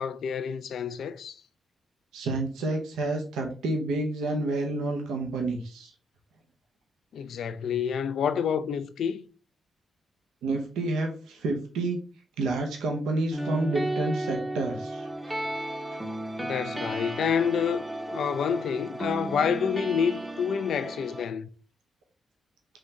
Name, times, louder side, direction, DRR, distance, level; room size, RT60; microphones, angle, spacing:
voice 1, 0.0-1.4 7.1-9.2 16.4-21.5, left 7 dB, 75° left, 0.3 m, -28 dB
voice 2, 2.1-5.9 10.4-12.0 12.4-15.1, right 2 dB, 85° right, 0.6 m, -29 dB
sound 1, 13.3-21.3, right 1 dB, 15° right, 0.7 m, -34 dB
3.7 x 2.8 x 3.1 m
supercardioid pair, 50°, 0 cm